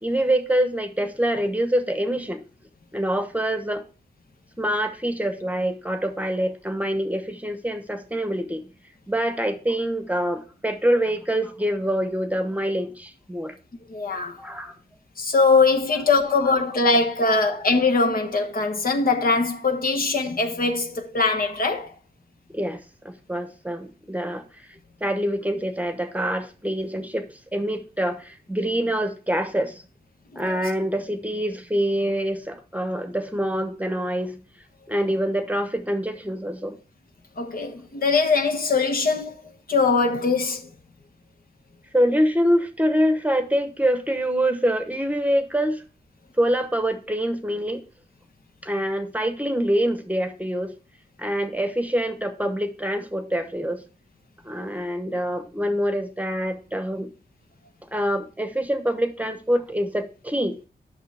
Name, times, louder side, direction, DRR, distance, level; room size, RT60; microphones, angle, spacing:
voice 1, 0.0-2.4 2.9-3.8 4.6-8.7 9.1-13.6 14.4-14.8 16.5-16.6 17.2-17.4 22.5-24.5 25.0-29.8 30.3-34.4 34.9-36.8 41.9-45.8 46.4-47.8 48.6-50.8 51.2-53.8 54.4-57.1 57.9-60.6, equal, 10° right, 1.0 m, -25 dB
voice 2, 13.9-14.4 15.2-21.9 30.3-30.6 37.4-39.3 39.7-40.6, left 4 dB, 55° left, 1.1 m, -22 dB
8.8 x 6.1 x 3.4 m
cardioid pair, 75°, 17 cm